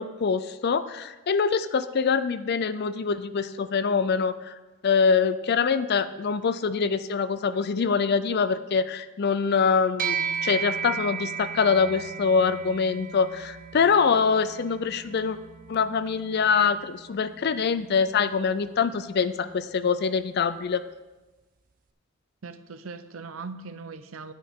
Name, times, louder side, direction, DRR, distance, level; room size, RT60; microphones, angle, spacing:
voice 1, 0.0-4.5 4.8-15.4 15.7-20.8, left 5 dB, 50° left, 13 dB, 0.4 m, -24 dB
sound 1, 10.0-19.6, right 6 dB, 40° right, 0.5 m, -36 dB
voice 2, 22.4-24.3, right 4 dB, 80° right, 11 dB, 0.6 m, -39 dB
9.9 x 9.5 x 3.6 m, 1.2 s
head